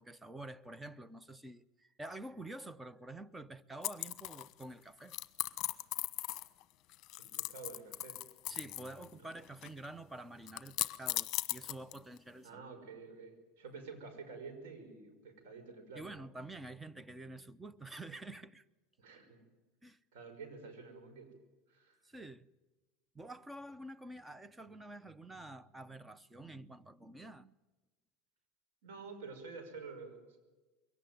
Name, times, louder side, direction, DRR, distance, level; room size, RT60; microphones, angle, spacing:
voice 1, 0.0-5.2 8.5-12.6 15.9-18.7 19.8-20.0 22.0-22.5 23.1-27.5, right 2 dB, 10° right, 0.7 m, -48 dB
sound 1, 3.8-4.6 5.1-6.6 6.9-9.1 9.3-9.9 10.5-12.2, left 16 dB, 45° left, 1.1 m, -38 dB
voice 2, 7.2-8.2 8.5-8.6 9.0-9.3 12.4-16.1 19.0-19.4 20.1-21.3 21.7-22.1 28.8-30.4, right 4 dB, 85° right, 5.8 m, -49 dB
22.5 x 18.0 x 9.3 m
supercardioid pair, 135°, 0 cm